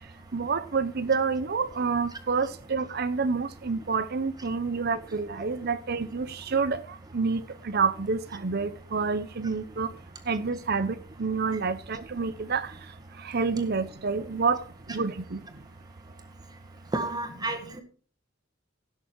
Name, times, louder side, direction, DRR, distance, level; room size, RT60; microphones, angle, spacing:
voice 1, 0.3-6.8 7.1-9.9 10.3-12.7 13.2-14.6 14.9-15.4, right 4 dB, 55° right, 0.7 m, -28 dB
voice 2, 16.9-17.8, right 2 dB, 20° right, 1.8 m, -31 dB
17.0 x 6.7 x 4.6 m
head